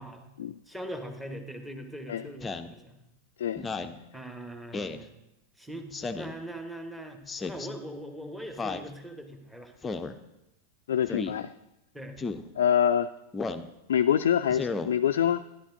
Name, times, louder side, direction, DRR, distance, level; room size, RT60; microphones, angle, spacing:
voice 1, 0.0-0.3 0.7-3.1 4.1-5.1 5.6-9.8 11.9-12.2, right 1 dB, 5° right, 5 dB, 1.2 m, -41 dB
Speech synthesizer, 2.4-2.7 3.6-4.0 4.7-5.0 5.9-6.4 7.3-7.7 8.6-8.9 9.8-10.1 11.1-11.3 12.2-12.4 13.3-13.7 14.5-14.9, left 4 dB, 15° left, 0.6 m, -33 dB
voice 2, 10.9-11.5 12.6-13.1 13.9-15.4, left 9 dB, 60° left, 9 dB, 0.3 m, -25 dB
13.5 x 11.0 x 2.7 m, 0.92 s
figure-of-eight pair, 90°, 0 cm